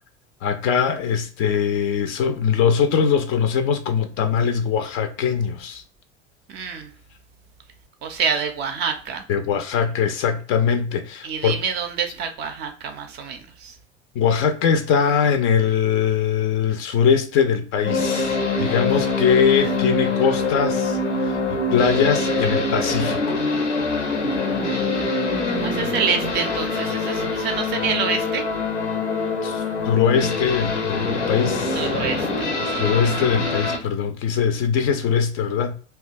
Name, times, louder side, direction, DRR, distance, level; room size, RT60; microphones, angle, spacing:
voice 1, 0.4-5.8 9.3-11.6 14.2-23.4 29.4-31.8 32.7-35.7, left 7 dB, 40° left, 0.4 m, -21 dB
voice 2, 6.5-6.9 8.0-9.2 11.2-13.8 25.5-28.4 31.7-32.5, right 6 dB, 30° right, 0.4 m, -27 dB
sound 1, 17.8-33.8, left 3 dB, 85° left, 0.6 m, -24 dB
2.7 x 2.2 x 2.4 m
figure-of-eight pair, 70°, 35 cm